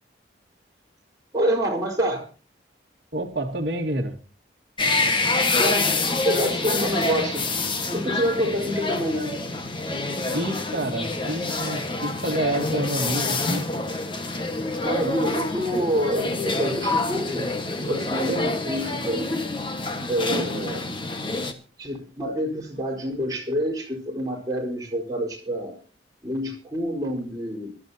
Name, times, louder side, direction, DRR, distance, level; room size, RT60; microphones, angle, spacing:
voice 1, 1.3-2.3 5.5-5.9 6.2-7.5 7.9-9.3 14.8-17.5 17.8-19.4 20.0-20.9 21.8-25.8 26.2-27.7, equal, 20° right, 4.5 m, -27 dB
voice 2, 3.1-4.2 10.3-13.7, right 1 dB, 55° right, 1.8 m, -28 dB
sound 1, 4.8-21.5, left 2 dB, 25° left, 1.5 m, -27 dB
24.0 x 13.0 x 2.8 m
head